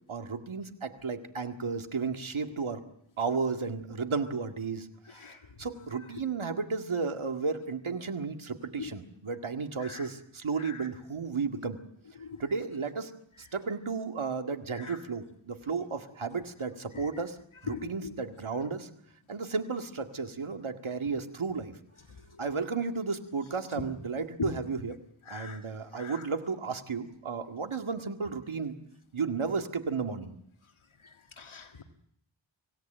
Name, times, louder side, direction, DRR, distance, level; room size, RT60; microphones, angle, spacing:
voice 1, 0.1-2.8 3.2-11.8 12.4-13.1 13.4-18.9 19.3-21.7 22.4-25.0 25.3-28.7 29.1-30.4, right 5 dB, 85° right, 6 dB, 2.0 m, -33 dB
voice 2, 5.1-5.4 8.8-8.9 9.8-10.1 10.6-10.8 12.2-12.4 14.7-15.0 16.9-17.1 17.7-18.1 24.4-24.5 25.3-25.6 25.9-26.2 31.4-31.8, left 6 dB, 85° left, 5 dB, 2.0 m, -40 dB
25.5 x 17.0 x 9.0 m, 0.70 s
wide cardioid pair, 75°, 47 cm